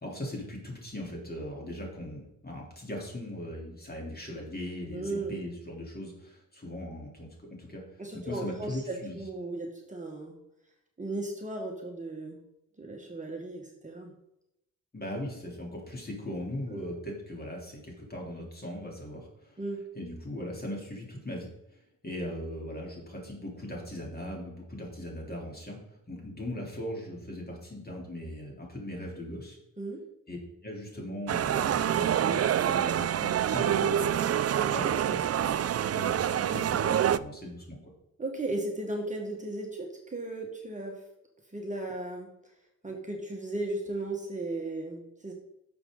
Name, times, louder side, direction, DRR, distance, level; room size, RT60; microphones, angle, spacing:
voice 1, 0.0-7.8 8.3-9.2 14.9-19.6 20.0-25.8 26.1-29.6 30.3-30.4 30.6-34.2 34.6-35.5 35.9-37.8, left 1 dB, 30° left, -1 dB, 3.6 m, -39 dB
voice 2, 4.9-5.4 8.0-10.4 11.0-12.4 12.8-14.1 16.7-16.9 19.6-19.8 29.8-30.0 34.6-35.0 38.2-41.0 41.5-42.3 42.8-45.3, right 2 dB, 20° right, 1 dB, 1.7 m, -36 dB
sound 1, 31.3-37.2, right 10 dB, 50° right, 0.4 m, -26 dB
11.5 x 6.9 x 3.9 m, 0.85 s
cardioid pair, 90°, 33 cm